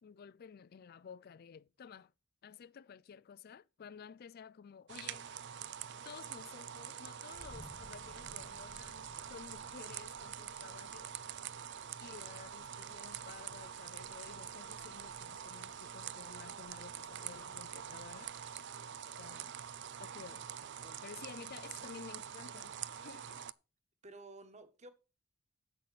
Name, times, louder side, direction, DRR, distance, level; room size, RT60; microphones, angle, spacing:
voice 1, 0.0-2.1 2.4-5.3 6.0-11.1 12.0-18.3 19.2-19.6 20.0-20.7 21.0-23.4, left 6 dB, 50° left, 0.4 m, -53 dB
sound 1, 4.9-23.5, right 9 dB, 60° right, 0.5 m, -46 dB
sound 2, 7.3-18.5, equal, 10° left, 1.4 m, -62 dB
voice 2, 24.0-24.9, right 2 dB, 35° right, 1.5 m, -53 dB
10.5 x 7.9 x 4.1 m
head